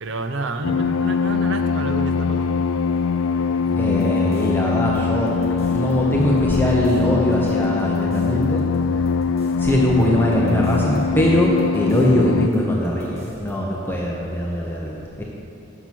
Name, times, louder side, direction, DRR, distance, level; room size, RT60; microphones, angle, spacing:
voice 1, 0.0-2.6, right 2 dB, 65° right, 8 dB, 0.6 m, -29 dB
sound 1, 0.6-12.5, left 5 dB, 90° left, 0.4 m, -22 dB
voice 2, 3.7-9.1 9.5-15.2, equal, 10° left, -3 dB, 0.8 m, -21 dB
sound 2, 3.7-5.9 6.2-7.0 7.3-11.0 11.3-12.2 12.5-12.6 12.8-13.5, equal, 35° right, 1.4 m, -43 dB
11.0 x 6.1 x 6.2 m, 2.8 s
head